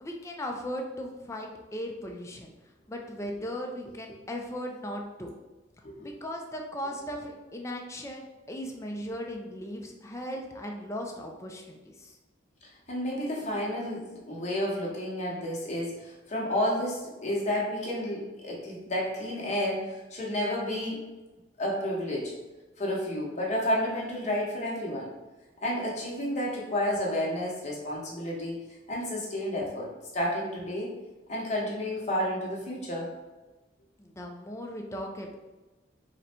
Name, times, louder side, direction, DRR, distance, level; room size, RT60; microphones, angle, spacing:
voice 1, 0.0-2.5 2.9-5.3 6.0-12.2 34.0-35.4, equal, 15° left, 2 dB, 0.4 m, -37 dB
voice 2, 12.6-21.0 21.6-22.3 22.8-25.1 25.6-28.6 28.9-30.9 31.3-33.1, left 1 dB, 40° left, -4 dB, 0.9 m, -31 dB
3.8 x 2.2 x 4.3 m, 1.1 s
head